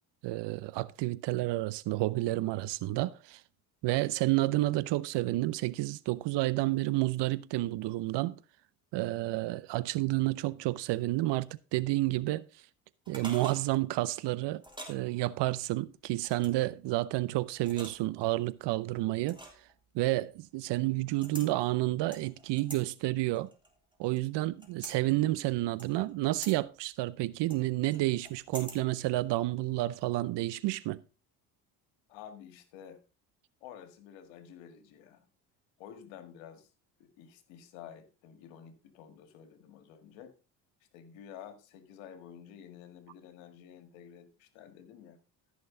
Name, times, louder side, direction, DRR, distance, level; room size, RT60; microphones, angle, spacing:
voice 1, 0.2-3.4 3.8-8.4 8.9-12.5 13.1-14.6 14.9-19.4 19.9-23.5 24.0-31.0, right 18 dB, 60° right, 0.8 m, -30 dB
sound 1, 13.0-13.6 14.6-15.0 16.2-16.6 17.6-18.2 19.3-19.7 21.2-21.5 22.1-22.8 23.3-24.2 24.6-25.0 25.8-26.1 26.4-26.6 27.5-28.8 29.1-29.2, right 1 dB, 10° right, 3.3 m, -46 dB
voice 2, 32.1-33.0 33.6-35.3 35.8-36.7 37.0-40.4 40.9-45.2, left 9 dB, 75° left, 2.0 m, -50 dB
14.0 x 6.4 x 3.8 m
hypercardioid pair, 65°, 48 cm